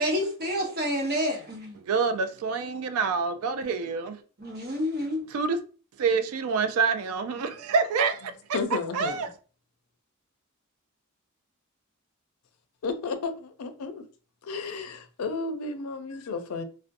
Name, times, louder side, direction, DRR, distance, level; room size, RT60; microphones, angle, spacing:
voice 1, 0.0-1.8 4.4-5.2, equal, 45° right, 0.8 m, -28 dB
voice 2, 1.8-4.2 5.3-5.6 6.0-8.6 8.9-9.3, right 5 dB, 85° right, 0.4 m, -27 dB
voice 3, 8.5-9.2 12.8-14.0 14.4-16.6, left 4 dB, 90° left, 0.4 m, -32 dB
2.6 x 2.1 x 2.5 m
head